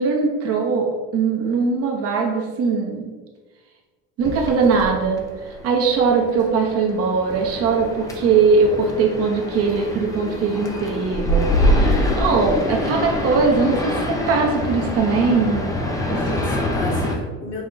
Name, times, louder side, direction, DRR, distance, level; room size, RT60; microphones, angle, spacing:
voice 1, 0.0-3.1 4.2-11.9 12.1-15.6 16.1-16.2, right 4 dB, 45° right, 0 dB, 0.8 m, -20 dB
sound 1, 4.2-17.2, left 1 dB, 10° left, 0.4 m, -25 dB
voice 2, 11.8-12.3 12.7-12.9 16.1-17.7, left 1 dB, 35° left, -1 dB, 1.1 m, -33 dB
4.9 x 2.1 x 3.9 m, 1.3 s
cardioid pair, 130°, 34 cm